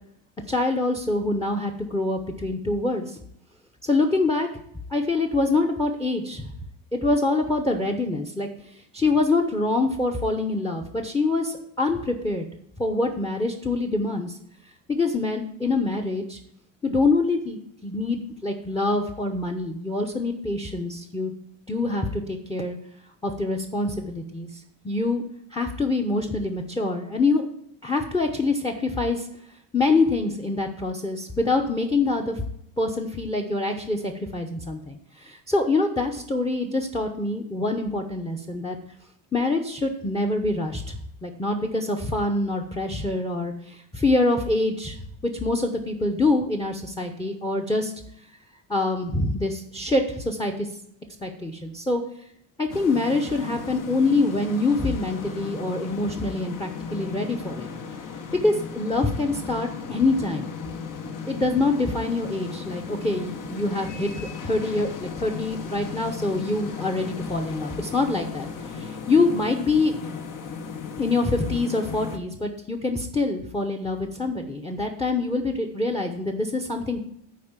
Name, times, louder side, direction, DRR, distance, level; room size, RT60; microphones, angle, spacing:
voice 1, 0.5-3.2 3.8-4.5 4.9-6.5 6.9-8.5 8.9-12.5 12.8-14.4 14.9-16.4 16.8-21.3 21.7-22.8 23.2-25.2 25.5-27.5 27.8-29.3 29.7-32.4 32.8-38.8 39.3-45.0 45.2-47.9 48.7-50.7 51.2-52.0 52.6-57.7 58.4-60.5 61.3-69.9 71.0-77.0, left 2 dB, 10° left, 4 dB, 0.9 m, -25 dB
sound 1, 52.7-72.2, left 5 dB, 50° left, 1.2 m, -36 dB
8.5 x 4.8 x 7.4 m, 0.72 s
cardioid pair, 115°, 40 cm